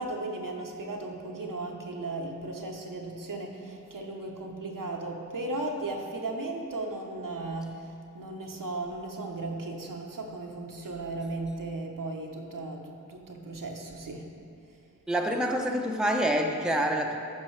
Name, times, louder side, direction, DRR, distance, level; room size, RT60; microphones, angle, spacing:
voice 1, 0.0-7.9 8.1-14.3, right 2 dB, 75° right, 1 dB, 0.9 m, -36 dB
voice 2, 15.1-17.2, right 1 dB, ahead, 2 dB, 0.7 m, -27 dB
13.0 x 5.3 x 3.2 m, 2.5 s
wide cardioid pair, 50°, 33 cm